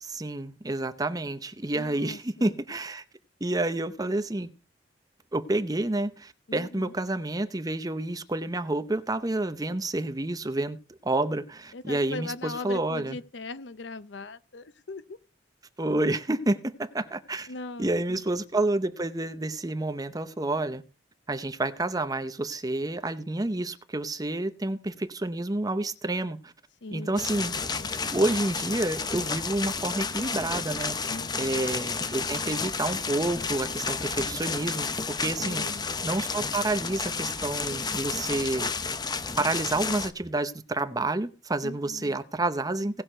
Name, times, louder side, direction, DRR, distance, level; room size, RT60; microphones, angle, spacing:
voice 1, 0.0-3.0 3.4-4.5 5.3-13.2 15.8-17.5 17.8-20.8 21.3-26.5 26.9-27.5 28.1-31.0 31.4-35.6 36.0-38.7 39.4-43.0, right 2 dB, 20° right, 0.8 m, -29 dB
voice 2, 1.7-2.5 6.5-6.9 11.7-15.2 17.5-18.2 26.8-27.9 31.1-31.7 35.4-35.9 41.6-42.2, left 3 dB, 70° left, 0.7 m, -40 dB
sound 1, 27.2-40.1, left 4 dB, 25° left, 0.7 m, -31 dB
18.0 x 6.5 x 4.5 m
head